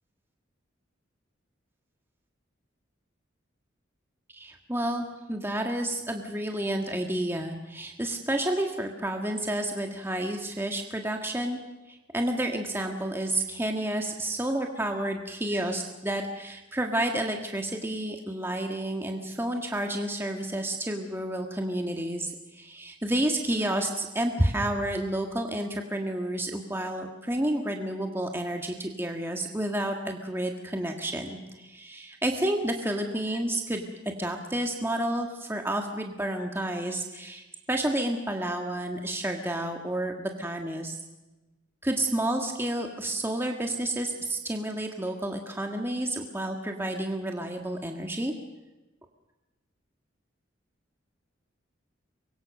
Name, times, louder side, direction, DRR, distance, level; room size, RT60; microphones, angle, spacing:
voice 1, 4.3-11.6 11.9-41.0 41.8-48.3, right 1 dB, 10° right, 3 dB, 1.7 m, -30 dB
25.0 x 22.0 x 6.6 m, 1.1 s
head